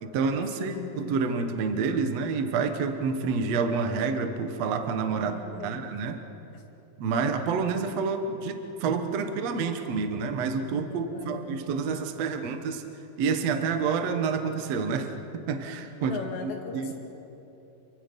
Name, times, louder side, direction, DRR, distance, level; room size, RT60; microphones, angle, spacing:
voice 1, 0.0-5.3 5.6-6.2 7.0-12.8 13.2-16.9, right 5 dB, 70° right, 6 dB, 1.5 m, -28 dB
voice 2, 0.5-1.1 5.1-5.8 6.5-6.6 10.9-11.4 16.0-16.9, left 5 dB, 80° left, -1 dB, 4.4 m, -39 dB
29.0 x 23.5 x 5.4 m, 3.0 s
omnidirectional pair, 5.0 m